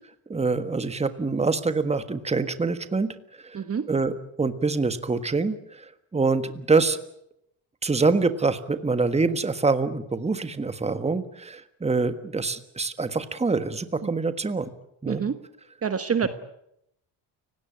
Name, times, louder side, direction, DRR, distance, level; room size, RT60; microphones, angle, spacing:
voice 1, 0.3-3.2 3.4-3.6 3.9-5.6 6.1-7.0 7.8-14.7 15.0-15.2 16.2-16.3, right 4 dB, 15° right, 10 dB, 1.5 m, -25 dB
voice 2, 15.8-16.3, right 6 dB, 30° right, 10 dB, 1.3 m, -26 dB
30.0 x 17.5 x 8.7 m, 0.78 s
cardioid pair, 130°, 48 cm